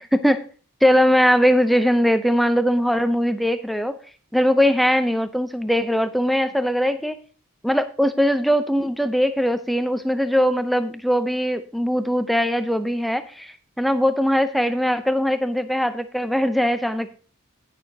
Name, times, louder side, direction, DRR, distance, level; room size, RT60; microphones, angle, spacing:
voice 1, 0.8-4.0 4.3-7.2 7.6-17.1, equal, ahead, 10 dB, 0.5 m, -20 dB
17.5 x 6.5 x 2.8 m, 0.40 s
head